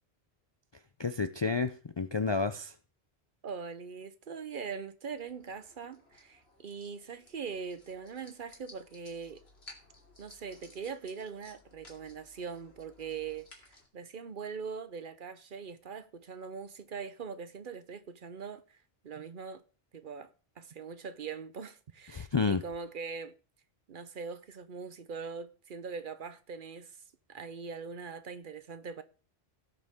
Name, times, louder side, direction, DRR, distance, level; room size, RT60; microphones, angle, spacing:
voice 1, 1.0-2.7 22.1-22.6, left 4 dB, 40° left, 0.4 m, -30 dB
voice 2, 3.4-9.4 10.2-18.8 19.0-19.6 19.9-20.3 20.6-23.3 23.9-27.0 27.3-29.0, right 5 dB, 55° right, 0.9 m, -42 dB
sound 1, 5.1-13.9, left 2 dB, 80° left, 2.7 m, -57 dB
17.5 x 6.6 x 3.6 m
omnidirectional pair, 1.1 m